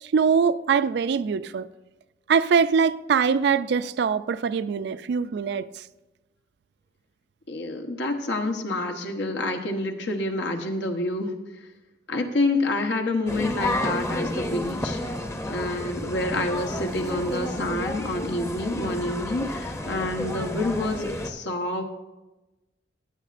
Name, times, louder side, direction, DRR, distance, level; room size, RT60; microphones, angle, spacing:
voice 1, 0.1-1.7 2.3-5.6, right 6 dB, 70° right, 0.3 m, -22 dB
voice 2, 7.5-11.3 12.1-15.0 15.5-21.8, left 2 dB, 90° left, 1.1 m, -28 dB
sound 1, 13.2-21.3, left 1 dB, 15° left, 0.6 m, -31 dB
15.0 x 8.3 x 2.5 m
head